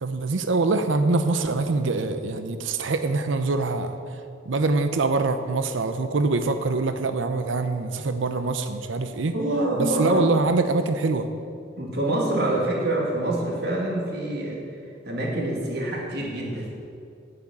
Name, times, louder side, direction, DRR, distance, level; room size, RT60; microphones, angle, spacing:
voice 1, 0.0-4.0 4.5-9.3 9.8-11.3, right 3 dB, 80° right, 9 dB, 0.6 m, -24 dB
voice 2, 9.3-10.3 11.8-14.6 15.0-16.7, right 1 dB, 55° right, -1 dB, 2.3 m, -26 dB
8.6 x 7.8 x 8.6 m, 2.4 s
head